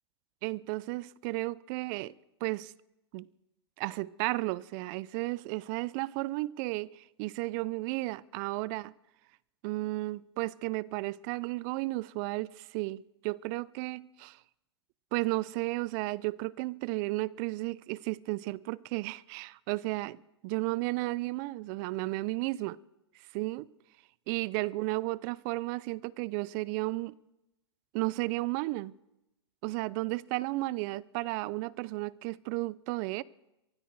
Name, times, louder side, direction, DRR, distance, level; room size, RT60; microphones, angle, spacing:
voice 1, 0.4-2.1 2.4-2.7 3.1-3.3 3.8-8.9 9.6-14.4 15.1-22.8 23.3-23.7 24.3-27.1 27.9-28.9 29.6-33.2, right 21 dB, 45° right, 0.5 m, -33 dB
23.5 x 13.0 x 4.7 m
hypercardioid pair, 110°, 14 cm